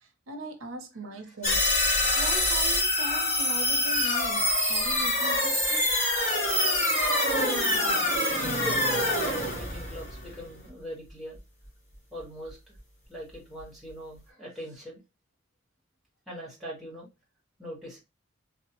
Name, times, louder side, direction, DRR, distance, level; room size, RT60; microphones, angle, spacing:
voice 1, 0.0-1.7 2.1-5.9, right 1 dB, 85° right, 0.6 m, -40 dB
sound 1, 1.4-10.7, left 1 dB, 35° left, 1.3 m, -25 dB
voice 2, 8.5-9.0 9.3-11.4 12.1-12.6 13.1-15.0 16.3-17.1 17.6-18.0, equal, ahead, 1.1 m, -41 dB
3.1 x 2.0 x 2.8 m
head